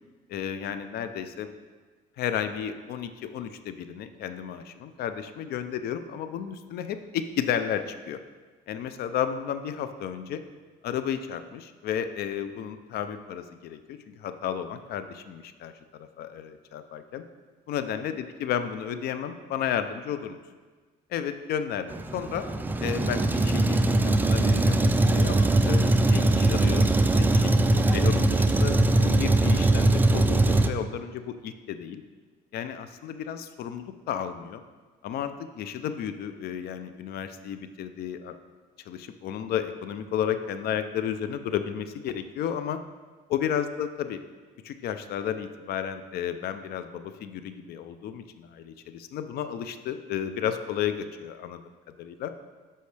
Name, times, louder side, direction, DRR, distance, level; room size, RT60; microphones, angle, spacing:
voice 1, 0.3-1.5 2.2-8.2 8.7-10.4 10.8-17.2 17.7-20.4 21.1-22.4 22.8-26.9 27.2-32.0 32.5-34.6 35.0-38.3 38.9-42.8 43.3-44.2 44.6-51.6 52.0-52.3, left 9 dB, 70° left, 10 dB, 0.5 m, -33 dB
Truck, 21.9-30.7, right 2 dB, 10° right, 0.3 m, -21 dB
8.2 x 5.6 x 3.3 m, 1.4 s
cardioid pair, 110°, 17 cm